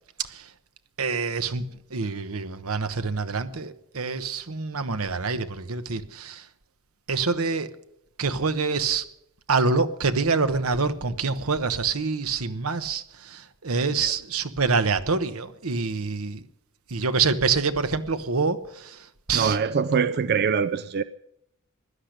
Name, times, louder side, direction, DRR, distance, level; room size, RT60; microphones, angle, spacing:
voice 1, 0.2-0.5 1.0-6.5 7.1-7.7 8.2-9.1 9.5-16.5 16.9-19.6 19.9-20.1, right 4 dB, 80° right, 1.1 m, -26 dB
voice 2, 19.3-21.0, right 6 dB, 50° right, 0.5 m, -24 dB
16.5 x 12.0 x 6.6 m
head